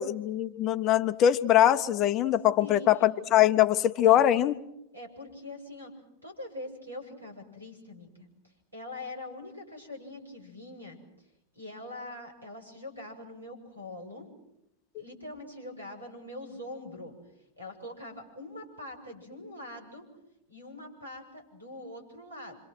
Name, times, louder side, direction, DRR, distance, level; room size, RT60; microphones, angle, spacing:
voice 1, 0.0-4.5, left 11 dB, 35° left, 13 dB, 0.9 m, -22 dB
voice 2, 2.6-3.2 4.0-4.2 4.9-5.9 6.2-11.3 11.5-14.3 15.0-17.1 17.6-20.1 20.5-22.6, left 1 dB, 80° right, 3 dB, 7.1 m, -43 dB
28.5 x 26.0 x 6.2 m, 0.82 s
figure-of-eight pair, 90°, 0 cm